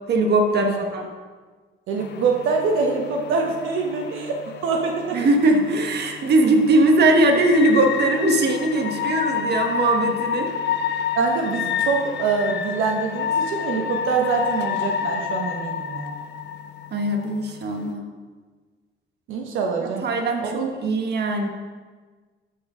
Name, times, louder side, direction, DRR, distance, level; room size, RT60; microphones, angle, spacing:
voice 1, 0.1-1.1 5.1-10.5 16.9-18.1 19.8-20.5 20.8-21.5, right 2 dB, 55° right, 3 dB, 1.3 m, -20 dB
voice 2, 1.9-4.4 4.6-5.2 11.1-16.2 19.3-20.0 20.4-20.7, right 4 dB, 85° right, 1 dB, 1.1 m, -24 dB
sound 1, 2.0-17.9, left 8 dB, 60° left, 0.5 m, -29 dB
12.5 x 4.6 x 5.0 m, 1.4 s
cardioid pair, 90°, 20 cm